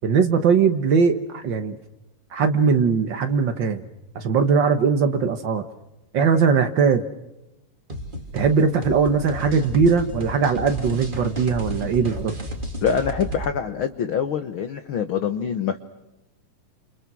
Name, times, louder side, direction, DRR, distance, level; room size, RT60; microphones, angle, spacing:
voice 1, 0.0-1.7 2.3-3.8 4.1-5.6 6.1-7.0 8.3-12.3, right 5 dB, 80° right, 7 dB, 1.0 m, -20 dB
sound 1, 7.9-13.5, equal, 15° right, 2.2 m, -32 dB
voice 2, 12.8-15.8, left 7 dB, 80° left, 10 dB, 1.1 m, -25 dB
29.5 x 29.0 x 6.2 m, 0.94 s
omnidirectional pair, 4.0 m